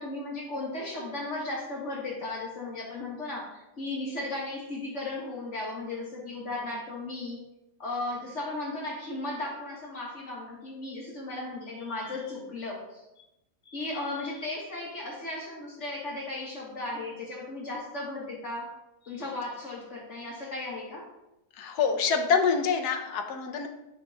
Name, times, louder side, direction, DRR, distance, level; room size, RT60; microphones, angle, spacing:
voice 1, 0.0-7.4 7.8-13.2 13.7-18.7 19.0-21.1, left 2 dB, 45° left, -3 dB, 2.1 m, -36 dB
voice 2, 21.6-23.7, left 5 dB, 80° left, 5 dB, 1.4 m, -26 dB
9.2 x 3.9 x 4.0 m, 0.91 s
omnidirectional pair, 1.7 m